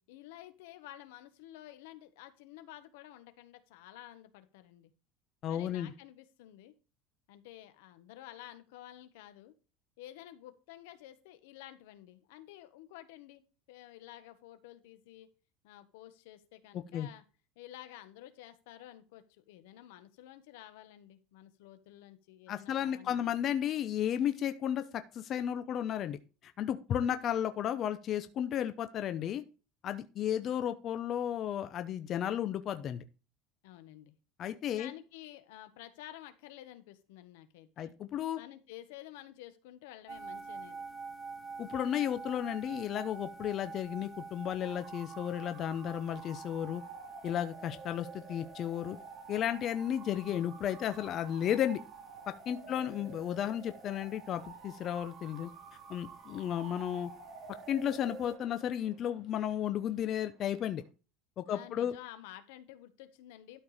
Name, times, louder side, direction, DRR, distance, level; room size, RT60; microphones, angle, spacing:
voice 1, 0.1-4.9 5.5-6.7 7.3-9.5 10.0-13.4 13.7-15.3 15.6-17.2 17.5-23.4 33.6-34.1 34.6-37.9 38.4-40.8 52.6-53.2 61.4-63.6, left 13 dB, 85° left, 11 dB, 1.4 m, -51 dB
voice 2, 5.4-5.9 16.7-17.1 22.5-29.4 29.8-33.0 34.4-34.9 37.8-38.4 41.6-46.8 47.2-49.0 49.3-51.8 52.3-55.5 55.9-57.1 57.7-60.8 61.4-61.9, left 10 dB, 40° left, 10 dB, 0.8 m, -33 dB
sound 1, 40.1-58.3, right 4 dB, 25° right, 1.1 m, -49 dB
Bark / Motor vehicle (road) / Siren, 44.6-60.9, right 5 dB, 50° right, 4.1 m, -51 dB
12.0 x 4.6 x 5.0 m, 0.33 s
cardioid pair, 145°, 0 cm